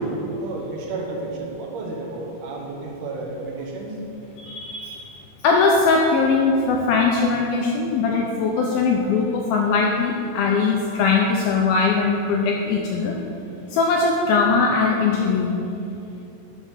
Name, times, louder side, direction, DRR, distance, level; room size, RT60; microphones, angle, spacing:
voice 1, 0.4-4.0, right 3 dB, 75° right, -1 dB, 3.1 m, -32 dB
voice 2, 4.4-5.1 5.4-13.2 13.7-15.5, left 4 dB, 85° left, 0 dB, 2.1 m, -20 dB
12.0 x 6.3 x 5.1 m, 2.8 s
omnidirectional pair, 4.9 m